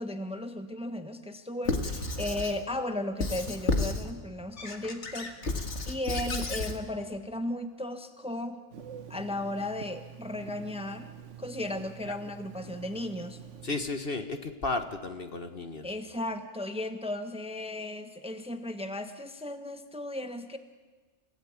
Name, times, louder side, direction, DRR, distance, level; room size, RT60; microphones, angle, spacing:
voice 1, 0.0-5.3 5.8-8.6 9.1-11.1 11.4-13.4 15.8-20.6, left 1 dB, 5° right, 8 dB, 1.2 m, -35 dB
Squeak / Writing, 1.6-2.6 3.2-4.1 4.6-6.8, left 3 dB, 70° left, 2.2 m, -32 dB
Telephone, 8.7-13.8, right 9 dB, 80° right, 1.4 m, -47 dB
voice 2, 13.6-16.0, left 3 dB, 50° left, 8 dB, 1.7 m, -34 dB
29.5 x 17.5 x 8.7 m, 1.3 s
omnidirectional pair, 1.2 m